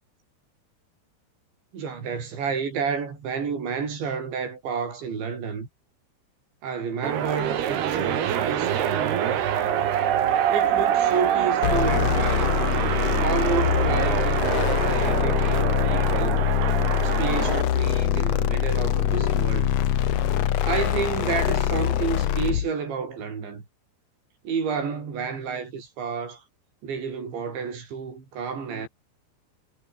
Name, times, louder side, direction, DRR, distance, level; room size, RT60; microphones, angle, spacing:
voice 1, 1.7-5.7 6.6-9.8 10.5-12.6 13.2-16.4 17.0-19.8 20.6-23.6 24.4-26.4 26.8-28.9, right 6 dB, 85° right, 8.0 m, -30 dB
sound 1, 7.0-17.6, right 10 dB, 65° right, 4.2 m, -25 dB
sound 2, 11.6-22.7, left 11 dB, 75° left, 1.5 m, -23 dB
omnidirectional pair, 5.0 m